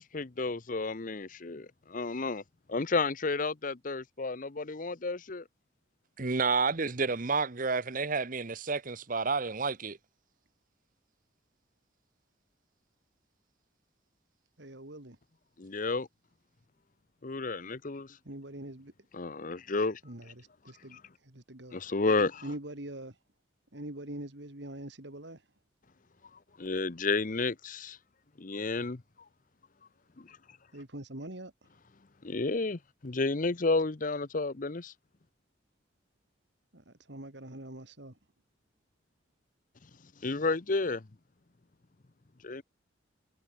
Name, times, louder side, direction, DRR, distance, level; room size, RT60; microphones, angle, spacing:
voice 1, 0.0-2.4 2.7-5.4 15.6-16.1 17.2-18.1 19.1-20.0 21.7-22.4 26.6-28.0 28.4-29.0 32.2-34.9 40.2-41.0 42.4-42.6, left 3 dB, 40° left, 0.8 m, -31 dB
voice 2, 6.2-10.0, right 4 dB, 40° right, 0.9 m, -30 dB
voice 3, 14.6-15.2 18.2-18.9 20.0-21.8 22.4-23.2 23.7-25.4 30.7-31.7 36.7-38.2, right 1 dB, 60° right, 2.5 m, -44 dB
head